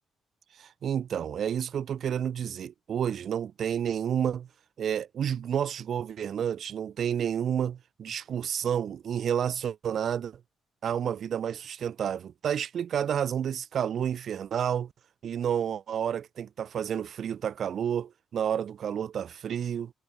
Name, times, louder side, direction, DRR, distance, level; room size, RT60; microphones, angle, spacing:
voice 1, 0.6-4.5 4.8-10.4 10.8-14.9 15.2-19.9, right 8 dB, 60° right, 2.5 m, -30 dB
cardioid pair, 90°, 0 cm